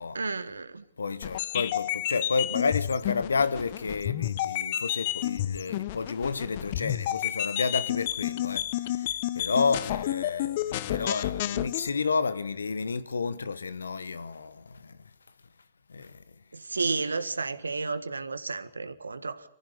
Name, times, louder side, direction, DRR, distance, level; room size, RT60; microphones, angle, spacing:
voice 1, 0.1-0.8 16.5-19.4, right 4 dB, 90° right, 1.6 m, -32 dB
voice 2, 1.0-8.7 9.0-15.0 15.9-16.2, left 4 dB, 85° left, 1.2 m, -30 dB
sound 1, 1.2-11.9, left 13 dB, 50° left, 1.0 m, -31 dB
24.5 x 15.0 x 9.5 m
hypercardioid pair, 120°, 0 cm